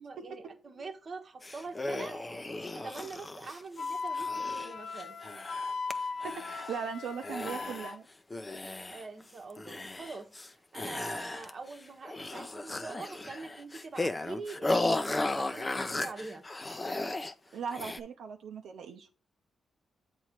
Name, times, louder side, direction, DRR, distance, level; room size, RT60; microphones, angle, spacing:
voice 1, 0.0-5.2 8.9-16.4, right 4 dB, 45° right, 1.1 m, -44 dB
sound 1, 1.4-5.9 6.2-6.9 7.2-7.9 8.3-9.2 9.5-10.5 10.7-11.7 12.0-17.3 17.7-18.0, left 2 dB, 20° left, 0.7 m, -35 dB
Wind instrument woodwind instrument, 3.8-8.0, left 4 dB, 60° left, 0.8 m, -37 dB
voice 2, 6.2-8.1 17.5-19.1, right 6 dB, 80° right, 0.8 m, -39 dB
7.9 x 3.1 x 5.8 m
cardioid pair, 85°, 0 cm